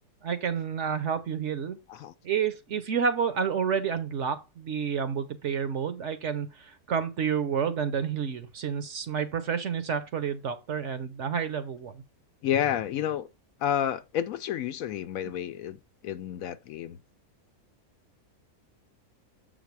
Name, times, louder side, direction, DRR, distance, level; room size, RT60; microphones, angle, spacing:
voice 1, 0.2-1.8 2.2-12.0, right 7 dB, 60° right, 1.0 m, -29 dB
voice 2, 12.4-13.3 13.6-17.0, left 10 dB, 70° left, 0.9 m, -30 dB
7.4 x 4.1 x 4.5 m
omnidirectional pair, 1.6 m